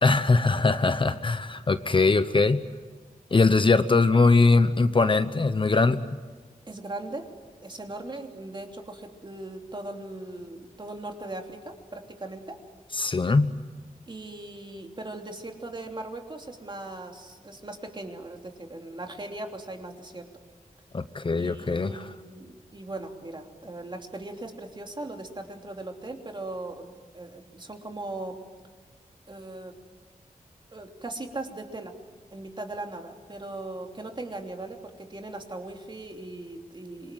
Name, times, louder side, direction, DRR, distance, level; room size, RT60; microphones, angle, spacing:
voice 1, 0.0-2.6 3.3-6.0 12.9-13.5 20.9-22.1, left 3 dB, 35° left, 11 dB, 0.9 m, -21 dB
voice 2, 6.7-7.3 7.6-12.6 14.1-20.3 21.4-28.4 29.3-29.7 30.7-31.9 32.3-37.1, right 2 dB, 35° right, 3 dB, 3.1 m, -39 dB
26.5 x 23.5 x 9.2 m, 1.4 s
wide cardioid pair, 115°, 14 cm